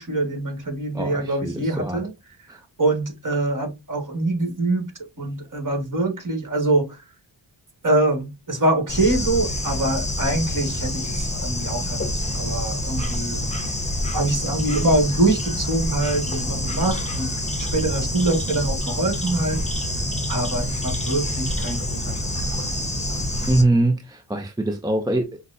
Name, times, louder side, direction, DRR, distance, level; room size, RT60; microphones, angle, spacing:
voice 1, 0.0-2.1 2.8-4.9 5.2-6.9 7.8-13.4 14.1-17.3 17.6-19.6 20.3-22.0 22.3-22.8 23.1-23.2, right 2 dB, 40° right, 1.7 m, -24 dB
voice 2, 0.9-2.0 2.5-2.6 23.5-25.4, right 2 dB, 10° right, 0.5 m, -23 dB
Bird / Insect, 8.9-23.6, left 1 dB, 15° left, 1.0 m, -27 dB
5.8 x 2.2 x 2.6 m
wide cardioid pair, 70°, 48 cm